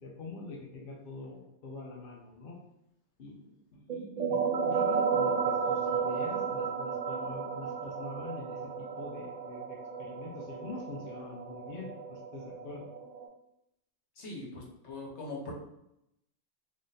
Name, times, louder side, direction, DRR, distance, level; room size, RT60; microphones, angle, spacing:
voice 1, 0.0-2.6 3.2-12.9, left 2 dB, 55° left, -2 dB, 0.8 m, -45 dB
sound 1, 3.9-13.3, right 6 dB, 60° right, 0.4 m, -33 dB
voice 2, 14.2-15.5, left 2 dB, 70° left, -1 dB, 1.2 m, -41 dB
3.1 x 2.6 x 3.9 m, 0.82 s
omnidirectional pair, 1.2 m